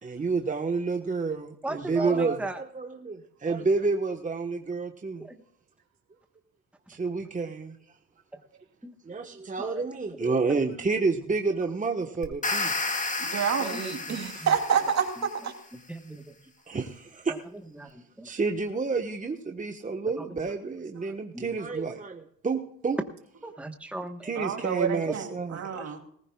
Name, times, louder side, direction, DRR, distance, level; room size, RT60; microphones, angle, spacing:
voice 1, 0.0-2.4 2.7-5.2 6.9-7.8 9.1-12.7 16.7-17.3 18.2-23.0 24.2-25.6, right 4 dB, 25° right, 4 dB, 1.2 m, -29 dB
voice 2, 1.6-2.6 5.2-5.4 8.3-8.4 8.8-9.0 9.6-9.8 10.2-10.6 13.6-14.5 15.2-15.3 15.7-16.3 17.3-18.3 20.2-20.3 21.0-21.6 23.4-25.1 25.7-25.8, right 1 dB, 5° right, 5 dB, 1.2 m, -39 dB
sound 1, 12.2-15.4, left 3 dB, 25° left, 2.0 m, -32 dB
voice 3, 13.2-15.5 19.9-20.0 24.4-26.0, right 7 dB, 60° right, 4 dB, 2.8 m, -28 dB
19.0 x 15.0 x 2.3 m, 0.66 s
cardioid pair, 90°, 30 cm